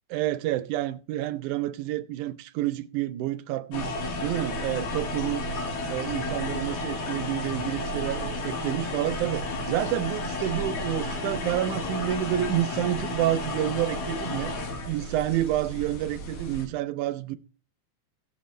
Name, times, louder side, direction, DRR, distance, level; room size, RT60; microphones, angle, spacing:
voice 1, 0.1-3.9 4.2-5.4 5.9-14.5 14.9-17.4, right 13 dB, 85° right, 2.2 m, -29 dB
sound 1, 3.7-16.7, left 2 dB, 75° left, 3.3 m, -32 dB
17.0 x 6.8 x 3.1 m
omnidirectional pair, 3.4 m